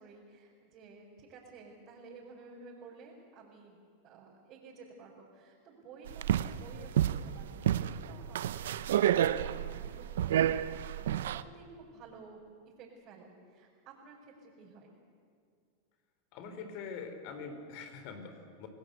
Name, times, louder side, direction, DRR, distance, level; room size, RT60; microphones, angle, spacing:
voice 1, 0.0-12.4 12.8-14.9, right 4 dB, 45° right, -4 dB, 5.3 m, -53 dB
sound 1, 6.1-11.4, right 11 dB, 80° right, 0.7 m, -30 dB
voice 2, 16.3-18.7, left 5 dB, 55° left, 7 dB, 4.1 m, -44 dB
28.0 x 19.0 x 8.2 m, 2.2 s
hypercardioid pair, 110°, 0 cm